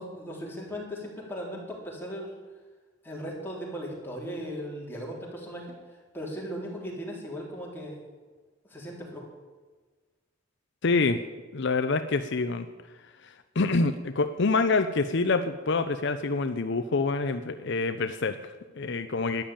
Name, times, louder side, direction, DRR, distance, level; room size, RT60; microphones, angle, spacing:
voice 1, 0.0-2.3 3.0-5.7 6.1-8.0 8.7-9.2, equal, 10° left, -3 dB, 4.0 m, -37 dB
voice 2, 10.8-11.2 11.5-12.7 13.2-19.4, left 3 dB, 60° left, 9 dB, 0.7 m, -26 dB
13.0 x 10.5 x 8.7 m, 1.3 s
head